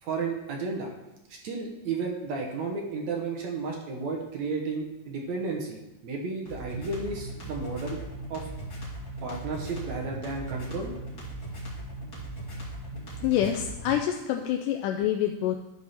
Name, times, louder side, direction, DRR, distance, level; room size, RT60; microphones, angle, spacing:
voice 1, 0.0-0.9 1.3-8.0 8.3-8.5 9.2-10.9, right 4 dB, 65° right, 0 dB, 2.1 m, -33 dB
sound 1, 6.5-14.0, right 1 dB, 30° left, 2.7 m, -38 dB
voice 2, 13.2-15.6, left 11 dB, 80° left, 3 dB, 2.0 m, -26 dB
11.0 x 4.8 x 5.7 m, 0.97 s
omnidirectional pair, 4.0 m